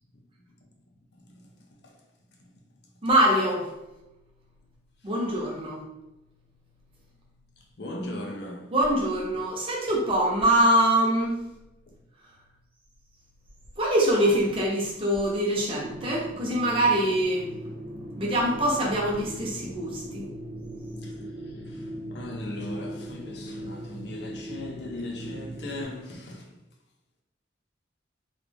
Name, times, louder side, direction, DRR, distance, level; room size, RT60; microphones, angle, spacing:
voice 1, 1.1-2.0 7.8-8.7 9.3-9.5 11.9-12.0 21.0-26.6, left 1 dB, 60° left, 0.6 m, -39 dB
voice 2, 3.0-3.7 5.0-5.8 8.7-11.4 13.8-17.5 18.2-20.3, right 1 dB, 30° right, 0.7 m, -24 dB
sound 1, 15.7-25.8, equal, 70° right, 0.9 m, -39 dB
3.1 x 2.5 x 3.4 m
head